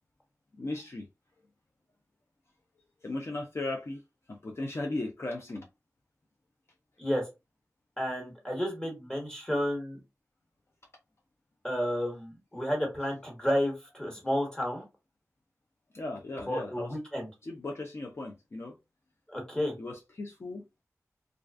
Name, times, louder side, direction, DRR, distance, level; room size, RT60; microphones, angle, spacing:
voice 1, 0.6-1.1 3.0-4.0 4.3-5.6 15.9-16.9 17.4-18.7 19.8-20.6, left 2 dB, 50° left, 0.4 m, -36 dB
voice 2, 8.0-10.0 11.6-14.8 16.5-17.3 19.3-19.7, equal, 15° left, 1.2 m, -31 dB
2.4 x 2.3 x 2.3 m
wide cardioid pair, 75°, 6 cm